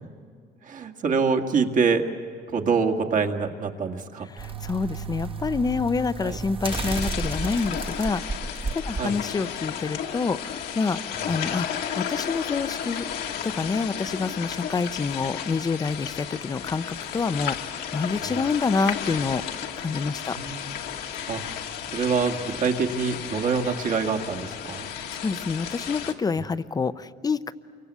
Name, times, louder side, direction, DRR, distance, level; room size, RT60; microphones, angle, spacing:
voice 1, 0.7-2.0 2.5-4.3 6.2-6.4 9.0-9.2 11.1-11.2 20.3-20.7 21.3-21.4 21.9-24.9, right 5 dB, 50° right, 4 dB, 2.1 m, -25 dB
voice 2, 4.3-8.2 8.7-11.0 11.3-11.7 12.0-13.0 13.4-17.6 17.9-20.4 25.1-27.5, left 4 dB, 20° left, 14 dB, 0.7 m, -27 dB
sound 1, 4.4-9.0 9.4-9.5, right 4 dB, 30° right, 1.4 m, -32 dB
sound 2, 6.6-26.1, left 9 dB, 75° left, 2.0 m, -33 dB
28.5 x 24.5 x 8.3 m, 2.1 s
cardioid pair, 110°, 17 cm